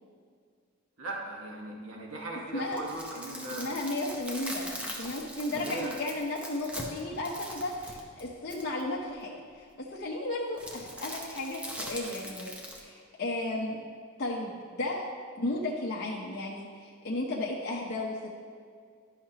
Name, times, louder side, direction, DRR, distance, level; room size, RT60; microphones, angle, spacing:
voice 1, 1.0-3.8 5.5-5.9, right 2 dB, 75° right, -1 dB, 1.3 m, -38 dB
sound 1, 2.6-8.8 10.6-12.8, equal, 5° right, 0.8 m, -41 dB
voice 2, 3.6-4.7 5.0-13.8 14.2-15.0 15.4-18.3, left 2 dB, 50° left, -5 dB, 0.8 m, -34 dB
11.5 x 5.8 x 2.9 m, 2.1 s
head